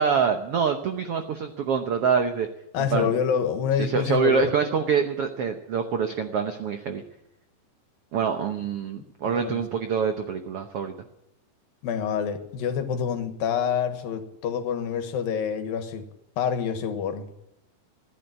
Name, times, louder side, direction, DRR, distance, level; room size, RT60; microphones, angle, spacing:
voice 1, 0.0-2.5 2.8-3.1 3.8-7.0 8.1-10.9, right 6 dB, 80° right, 6 dB, 1.3 m, -25 dB
voice 2, 2.7-4.4 9.3-9.6 11.8-16.1 16.4-17.3, left 7 dB, 80° left, 7 dB, 3.2 m, -27 dB
15.5 x 10.0 x 9.0 m, 0.82 s
omnidirectional pair, 4.1 m